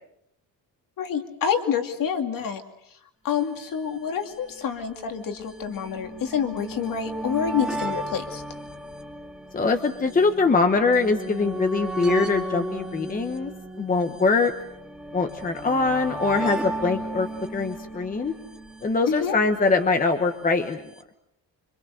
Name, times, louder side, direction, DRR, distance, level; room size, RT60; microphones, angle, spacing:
voice 1, 1.0-2.6 3.2-8.4 19.1-19.4, left 7 dB, 50° left, 6 dB, 2.6 m, -27 dB
sound 1, 3.3-3.4 3.6-3.7 4.5-19.8 20.7-20.8 21.0-21.1, right 1 dB, ahead, 2.2 m, -35 dB
voice 2, 9.5-13.5 13.8-14.5 15.1-18.3 18.8-20.8, left 4 dB, 20° left, 6 dB, 1.2 m, -23 dB
26.0 x 26.0 x 6.6 m, 0.79 s
cardioid pair, 180°, 41 cm